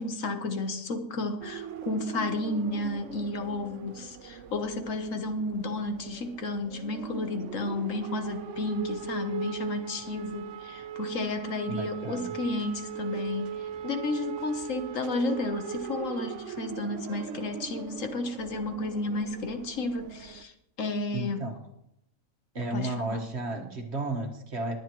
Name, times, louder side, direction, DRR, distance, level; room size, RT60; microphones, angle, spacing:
voice 1, 0.0-21.4 22.7-23.2, left 2 dB, 65° left, 7 dB, 1.4 m, -32 dB
Air Raid Siren Test, 1.4-20.4, right 8 dB, 65° right, 0.9 m, -40 dB
voice 2, 11.7-12.3 21.1-21.6 22.6-24.8, right 2 dB, 50° right, 3 dB, 1.7 m, -33 dB
20.0 x 9.4 x 3.1 m, 0.79 s
omnidirectional pair, 1.5 m